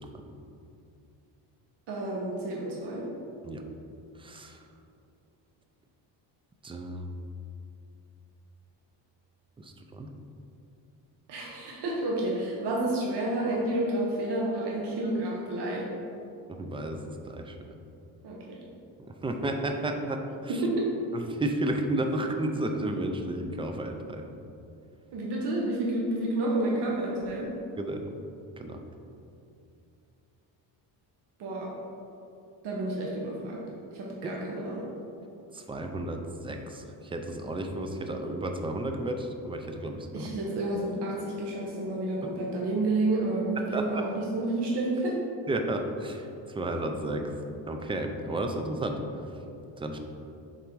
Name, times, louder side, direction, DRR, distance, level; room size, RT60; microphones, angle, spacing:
voice 1, 1.9-3.1 11.3-15.9 18.2-18.6 20.5-20.8 25.1-27.5 31.4-31.7 32.6-33.6 33.9-34.9 40.1-45.2, right 2 dB, 65° right, -3 dB, 1.1 m, -30 dB
voice 2, 4.2-4.6 6.6-7.1 9.6-10.1 16.5-17.0 17.3-17.6 19.2-20.5 21.1-24.2 27.8-28.1 28.6-28.8 34.2-34.3 35.5-40.3 43.7-44.0 45.5-46.3 46.5-47.3 47.7-49.0 49.8-50.0, right 1 dB, 15° right, 4 dB, 0.3 m, -32 dB
6.7 x 3.8 x 4.6 m, 2.6 s
cardioid pair, 140°, 44 cm